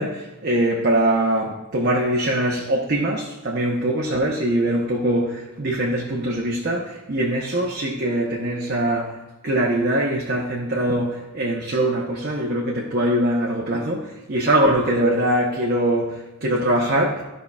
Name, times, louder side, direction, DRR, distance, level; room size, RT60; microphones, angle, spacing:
voice 1, 0.0-9.2 9.4-17.2, right 1 dB, 45° right, -3 dB, 0.8 m, -22 dB
13.0 x 5.5 x 2.3 m, 1.0 s
head